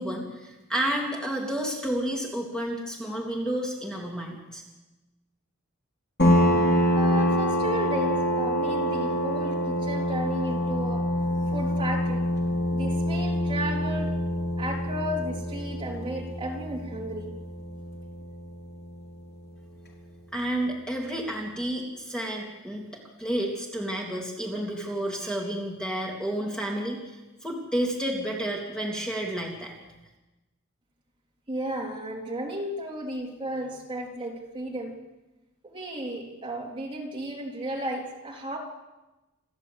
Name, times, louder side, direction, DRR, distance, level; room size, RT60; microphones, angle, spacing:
voice 1, 0.0-4.6 20.3-29.7, right 1 dB, 5° left, -1 dB, 3.0 m, -31 dB
sound 1, 6.2-19.5, equal, 55° left, 3.8 m, -26 dB
voice 2, 6.9-11.0 11.5-12.3 12.7-14.1 14.6-17.3 31.5-34.9 35.7-38.6, right 1 dB, 25° right, -1 dB, 3.5 m, -34 dB
28.0 x 11.0 x 8.3 m, 1.0 s
head